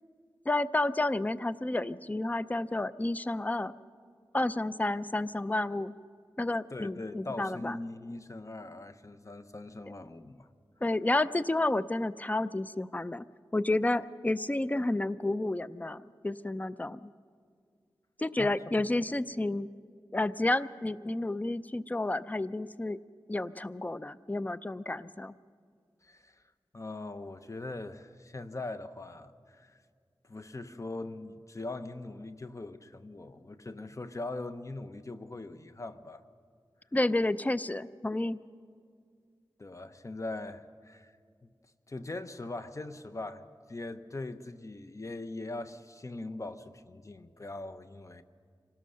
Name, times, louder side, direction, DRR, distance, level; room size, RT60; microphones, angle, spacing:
voice 1, 0.5-3.7 4.3-6.0 6.4-7.8 10.8-13.2 13.5-16.0 16.2-17.1 18.2-19.7 20.1-23.0 23.3-25.3 36.9-38.4, left 2 dB, 20° left, 15 dB, 0.5 m, -30 dB
voice 2, 6.7-10.5 18.4-18.9 26.0-26.4 26.7-29.8 30.2-36.2 39.6-41.2 41.9-48.2, left 2 dB, 40° left, 10 dB, 0.9 m, -41 dB
25.5 x 18.0 x 6.5 m, 2.1 s
wide cardioid pair, 70°, 9 cm